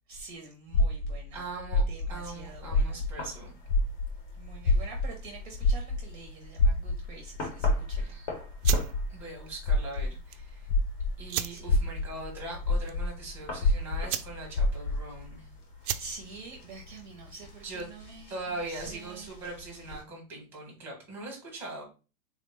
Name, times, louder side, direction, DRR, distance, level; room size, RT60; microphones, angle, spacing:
voice 1, 0.1-1.5 1.9-3.0 4.4-8.2 11.5-11.8 16.0-19.3, right 4 dB, 35° right, 1 dB, 0.6 m, -47 dB
sound 1, 0.7-3.4 3.7-11.2 11.6-15.1, left 2 dB, 70° left, 0.6 m, -27 dB
voice 2, 1.3-1.8 2.1-3.6 4.6-4.7 8.0-8.3 9.1-10.7 11.2-15.4 17.6-17.8 18.3-21.8, right 2 dB, 5° right, -2 dB, 0.9 m, -41 dB
sound 2, 2.1-20.0, left 3 dB, 30° left, 0.7 m, -47 dB
sound 3, 8.6-18.1, right 10 dB, 85° right, 0.5 m, -39 dB
3.6 x 2.1 x 3.3 m, 0.33 s
supercardioid pair, 165°, 44 cm